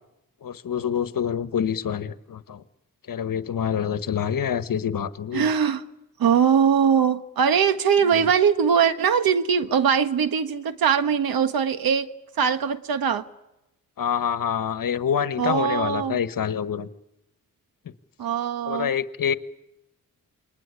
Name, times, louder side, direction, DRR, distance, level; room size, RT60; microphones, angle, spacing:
voice 1, 0.4-2.6 3.1-5.5 14.0-16.9 18.7-19.3, left 8 dB, 70° left, 1.4 m, -26 dB
voice 2, 5.3-5.8 6.2-12.1 12.4-13.2 15.4-16.2 18.2-18.9, right 7 dB, 85° right, 1.5 m, -21 dB
28.0 x 21.0 x 9.9 m
cardioid pair, 70°, 35 cm